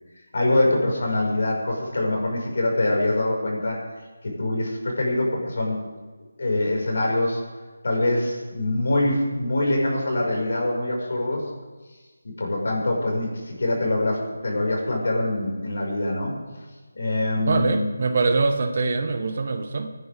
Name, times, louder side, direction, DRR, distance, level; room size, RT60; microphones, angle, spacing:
voice 1, 0.3-3.8 4.2-5.8 6.4-7.4 7.8-11.5 12.2-16.4 16.9-17.9, left 1 dB, 60° left, -1 dB, 5.9 m, -24 dB
voice 2, 17.5-19.9, right 3 dB, 45° right, 6 dB, 1.5 m, -23 dB
25.0 x 10.5 x 3.7 m, 1.3 s
figure-of-eight pair, 160°, 0 cm